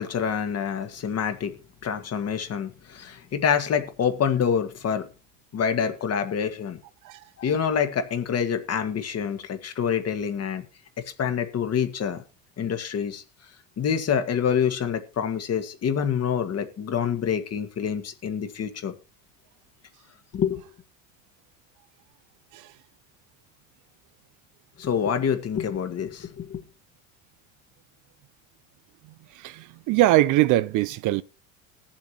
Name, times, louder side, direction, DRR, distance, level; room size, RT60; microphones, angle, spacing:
voice 1, 0.0-1.5 1.8-5.1 5.5-6.8 7.4-10.6 11.2-12.2 12.6-13.2 13.8-18.9 20.3-20.6 24.8-26.6, left 7 dB, 40° left, 1.7 m, -26 dB
voice 2, 29.3-31.2, right 15 dB, 50° right, 0.6 m, -22 dB
20.0 x 7.3 x 3.0 m
hypercardioid pair, 85°, 40 cm